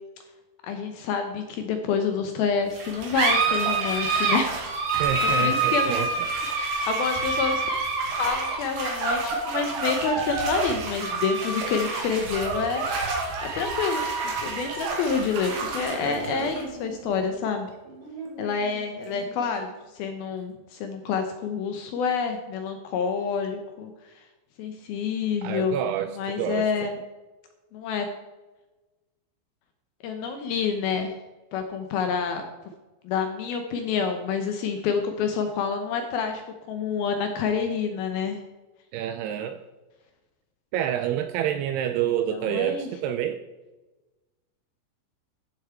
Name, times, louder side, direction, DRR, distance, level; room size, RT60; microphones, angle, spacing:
voice 1, 0.6-4.6 5.2-6.1 6.5-7.7 8.2-12.8 13.4-14.0 14.4-17.7 18.4-19.7 19.9-23.9 24.6-25.8 26.1-27.0 27.7-28.1 30.0-31.1 31.5-32.4 33.0-36.4 36.7-38.4 42.3-42.9, left 6 dB, 75° left, 6 dB, 2.4 m, -28 dB
sound 1, 2.7-19.7, right 3 dB, 55° right, 3.6 m, -28 dB
voice 2, 5.0-6.3 16.0-16.5 25.4-26.1 26.4-26.9 38.9-39.6 40.7-43.4, right 10 dB, 80° right, 9 dB, 2.4 m, -28 dB
13.0 x 7.2 x 4.5 m, 1.1 s
omnidirectional pair, 5.1 m